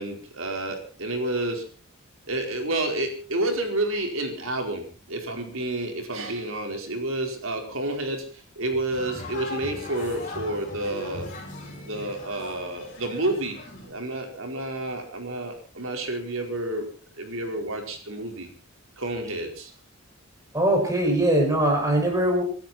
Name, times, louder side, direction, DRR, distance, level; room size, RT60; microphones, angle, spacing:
voice 1, 0.0-1.6 2.3-11.3 11.8-13.6 13.8-16.9 17.1-18.5 19.0-19.7, right 1 dB, 75° right, 3 dB, 4.7 m, -30 dB
sound 1, 8.9-13.9, left 2 dB, 35° left, 7.4 m, -39 dB
voice 2, 20.5-22.4, right 1 dB, 15° right, 1 dB, 6.1 m, -21 dB
25.0 x 13.0 x 4.4 m, 0.41 s
head